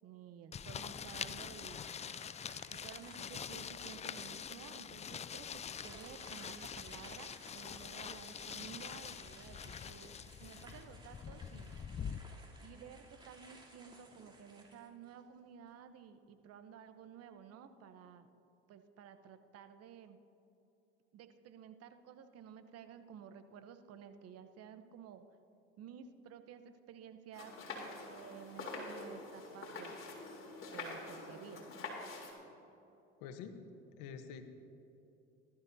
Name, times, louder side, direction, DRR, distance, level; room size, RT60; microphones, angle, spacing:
voice 1, 0.0-1.8 2.8-10.1 10.4-11.7 12.6-18.3 18.7-20.2 21.1-25.2 25.8-27.5 28.1-30.0 30.7-31.7, right 8 dB, 55° right, 9 dB, 1.0 m, -53 dB
sound 1, 0.5-12.2, left 7 dB, 25° left, 0.4 m, -45 dB
sound 2, 1.1-3.7 4.2-4.3 5.6-15.4, right 2 dB, 15° right, 3.3 m, -59 dB
sound 3, 27.3-32.3, left 3 dB, 45° left, 3.4 m, -46 dB
voice 2, 33.2-33.6 34.0-34.4, left 7 dB, 75° left, 8 dB, 1.2 m, -46 dB
19.0 x 12.5 x 2.8 m, 2.9 s
hypercardioid pair, 75°, 29 cm